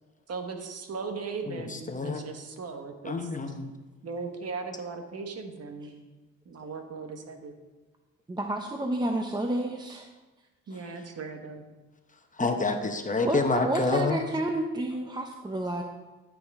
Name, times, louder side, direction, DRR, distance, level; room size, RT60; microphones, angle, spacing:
voice 1, 0.3-3.3 4.0-6.1 6.4-7.5 10.7-11.6, right 4 dB, 55° right, 5 dB, 1.4 m, -38 dB
voice 2, 1.5-2.2 3.0-3.7 12.4-14.2, left 3 dB, 25° left, 6 dB, 0.9 m, -28 dB
voice 3, 8.3-10.1 13.2-15.8, right 1 dB, 15° right, 3 dB, 0.7 m, -30 dB
12.0 x 6.4 x 3.6 m, 1.2 s
cardioid pair, 90°, 30 cm